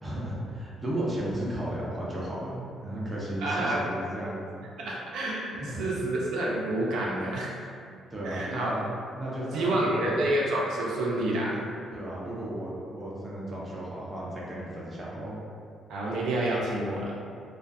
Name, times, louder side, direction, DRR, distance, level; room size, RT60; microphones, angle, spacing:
voice 1, 0.0-4.4 5.6-5.8 7.6-7.7 8.1-8.9 9.1-10.2 11.9-15.4, right 1 dB, 20° right, -6 dB, 0.6 m, -34 dB
voice 2, 3.4-3.9 4.8-7.6 8.2-8.8 9.5-11.6 15.9-17.2, right 1 dB, 80° right, -4 dB, 0.4 m, -28 dB
2.4 x 2.3 x 2.5 m, 2.3 s
cardioid pair, 115°, 0 cm